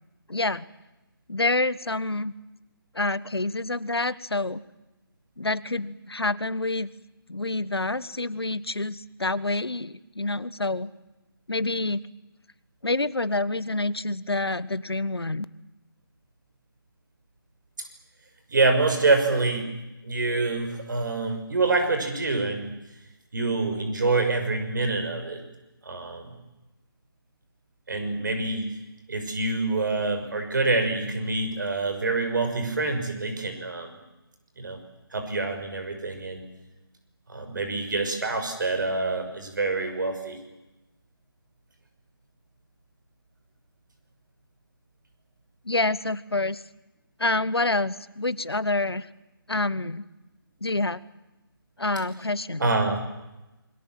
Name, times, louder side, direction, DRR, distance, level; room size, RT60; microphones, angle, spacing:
voice 1, 0.3-0.7 1.3-2.3 2.9-4.6 5.4-6.9 7.3-10.9 11.5-12.0 12.8-15.4 45.6-46.6 47.2-49.1 49.5-50.0 50.6-51.0 51.8-52.7, left 2 dB, 90° left, 16 dB, 1.4 m, -27 dB
voice 2, 18.5-19.7 20.0-22.7 23.3-25.4 25.8-26.3 27.9-28.6 29.1-34.0 34.6-34.8 35.1-36.5 37.3-40.4 52.6-53.0, right 3 dB, 50° right, 6 dB, 6.3 m, -26 dB
28.0 x 22.0 x 7.6 m, 1.0 s
figure-of-eight pair, 160°, 13 cm